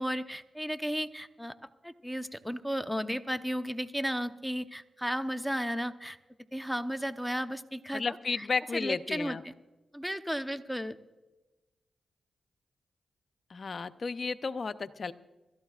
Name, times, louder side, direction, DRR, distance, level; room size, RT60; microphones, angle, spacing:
voice 1, 0.0-1.5 1.8-6.2 6.5-8.0 8.3-8.5 8.7-9.5 9.9-11.0, equal, ahead, 10 dB, 0.9 m, -34 dB
voice 2, 7.9-9.4 13.5-15.1, left 4 dB, 55° left, 10 dB, 0.7 m, -33 dB
26.5 x 13.5 x 2.5 m, 1.1 s
cardioid pair, 50°, 0 cm